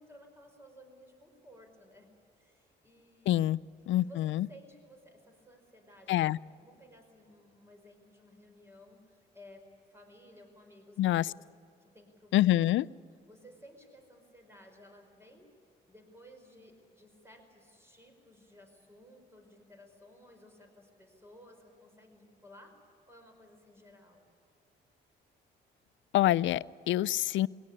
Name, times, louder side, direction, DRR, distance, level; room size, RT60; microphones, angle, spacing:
voice 1, 0.0-3.4 4.0-9.7 9.9-11.4 11.8-12.7 13.3-15.5 15.9-22.8 23.1-24.2, equal, 10° right, 4 dB, 5.3 m, -56 dB
voice 2, 3.3-4.5 6.1-6.4 11.0-11.3 12.3-12.8 26.1-27.5, left 14 dB, 75° left, 21 dB, 0.5 m, -26 dB
22.5 x 17.5 x 9.9 m, 2.5 s
cardioid pair, 90°, 20 cm